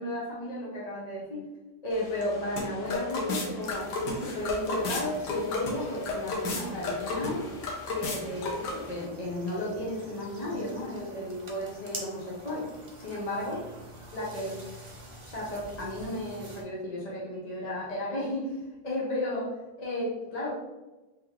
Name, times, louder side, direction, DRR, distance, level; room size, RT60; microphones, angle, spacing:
voice 1, 0.0-1.5 1.8-7.5 7.9-12.7 13.0-13.6 14.1-14.6 15.2-20.5, left 1 dB, 35° left, -5 dB, 0.7 m, -34 dB
sound 1, 1.9-9.0, left 2 dB, 90° left, 1.5 m, -34 dB
sound 2, 3.6-16.6, right 1 dB, 45° right, 0.3 m, -48 dB
3.6 x 3.0 x 3.6 m, 1.1 s
omnidirectional pair, 1.8 m